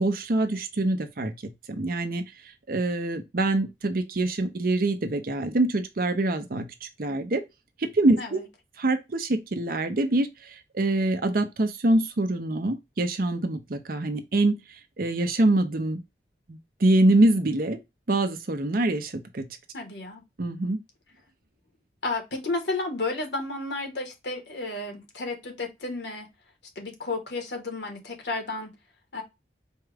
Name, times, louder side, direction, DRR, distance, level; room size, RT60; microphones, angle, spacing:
voice 1, 0.0-2.3 2.7-7.4 7.8-8.4 8.8-14.6 15.0-16.0 16.5-17.8 18.1-19.6 20.4-20.8, right 2 dB, 55° right, 0.7 m, -25 dB
voice 2, 19.7-20.2 22.0-26.3 26.7-28.7 29.1-29.2, left 2 dB, 75° left, 1.3 m, -32 dB
4.4 x 2.4 x 3.3 m
head